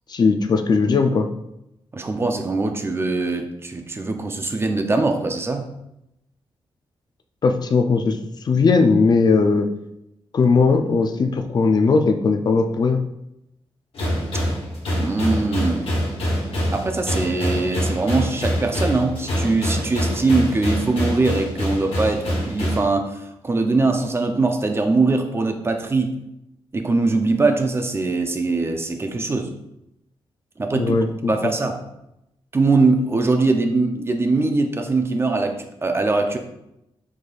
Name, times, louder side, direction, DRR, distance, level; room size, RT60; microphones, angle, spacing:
voice 1, 0.1-1.3 7.4-8.2 8.4-9.7 10.3-13.0 30.7-31.3, left 4 dB, 45° left, 5 dB, 0.4 m, -18 dB
voice 2, 1.9-5.7 15.0-16.0 16.7-26.1 26.7-29.5 30.6-31.0 31.3-31.8 32.5-36.4, right 3 dB, 25° right, 5 dB, 0.5 m, -22 dB
sound 1, 13.9-22.9, equal, 70° left, 1.3 m, -25 dB
4.8 x 4.0 x 2.3 m, 0.85 s
wide cardioid pair, 130°, 10 cm